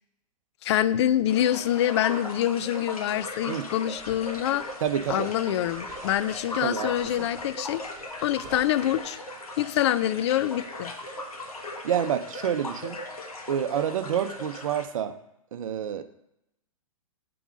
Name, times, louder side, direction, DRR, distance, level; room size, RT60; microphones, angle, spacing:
voice 1, 0.6-4.7 5.1-7.8 8.2-9.2 9.6-10.9, left 12 dB, 50° left, 15 dB, 0.4 m, -25 dB
sound 1, 1.3-14.8, left 1 dB, 90° left, 1.3 m, -38 dB
sound 2, 3.0-9.0, right 4 dB, 20° right, 2.4 m, -52 dB
voice 2, 4.8-5.3 6.6-6.9 7.2-7.3 11.8-13.0 13.5-15.1 15.5-16.0, right 9 dB, 65° right, 9 dB, 0.7 m, -28 dB
6.8 x 3.9 x 5.1 m, 0.83 s
hypercardioid pair, 120°, 18 cm